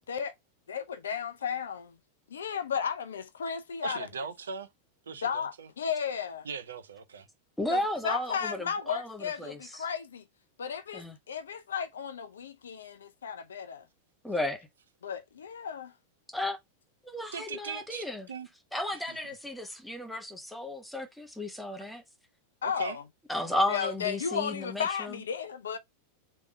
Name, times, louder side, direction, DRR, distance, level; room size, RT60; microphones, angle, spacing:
voice 1, 0.7-2.0 2.3-4.1 5.2-6.5 7.7-10.2 10.6-13.9 15.0-15.9 22.6-23.0 23.7-25.8, left 7 dB, 65° left, 0.5 m, -34 dB
voice 2, 3.8-4.7 5.1-5.7 6.4-7.3 17.3-18.5 19.1-19.2 22.6-23.0, right 5 dB, 65° right, 0.6 m, -39 dB
voice 3, 7.6-9.8 10.9-11.2 14.2-14.7 16.3-16.6 17.0-18.3 18.7-22.0 23.3-25.2, left 1 dB, 5° left, 0.9 m, -34 dB
3.5 x 3.1 x 4.6 m
figure-of-eight pair, 90°, 0 cm